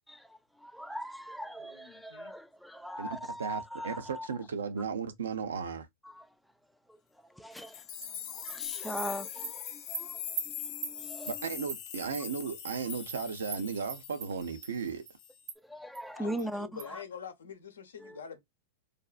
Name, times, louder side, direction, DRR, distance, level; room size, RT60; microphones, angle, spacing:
voice 1, 0.1-4.4 6.0-6.3 6.9-7.0 7.2-11.4 15.6-17.0 18.0-18.2, equal, ahead, 0.3 m, -41 dB
voice 2, 1.6-2.3 16.1-18.4, left 7 dB, 85° left, 0.7 m, -45 dB
voice 3, 3.4-5.9 11.3-15.0, right 6 dB, 85° right, 0.6 m, -35 dB
sound 1, 7.5-14.9 15.2-15.5, left 10 dB, 50° left, 0.6 m, -42 dB
Animal, 8.0-8.1 8.5-8.6 9.0-9.1 9.4-9.5 9.9-10.0 10.4-10.5 10.8-10.9 11.3-11.4 11.7-11.8 12.1-12.2 12.7-12.8 13.1-13.2 13.5-13.6 13.9-14.3 14.6-14.7 15.1-15.2 15.5-15.6 15.9-16.0 16.4-16.5 16.8-16.9, right 6 dB, 70° right, 0.9 m, -39 dB
2.5 x 2.3 x 2.3 m
hypercardioid pair, 115°, 0 cm